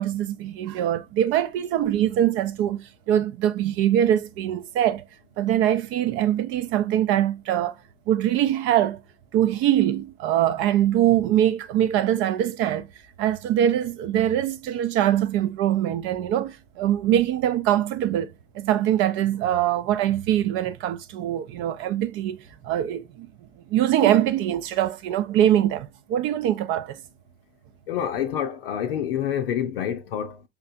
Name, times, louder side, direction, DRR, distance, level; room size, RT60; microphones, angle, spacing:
voice 1, 0.0-5.0 5.4-7.8 8.1-9.0 9.3-12.9 13.2-23.3 23.7-27.0, right 11 dB, 40° right, 0.6 m, -23 dB
voice 2, 27.9-30.4, left 9 dB, 65° left, 0.6 m, -27 dB
5.8 x 3.2 x 2.5 m
figure-of-eight pair, 75°, 31 cm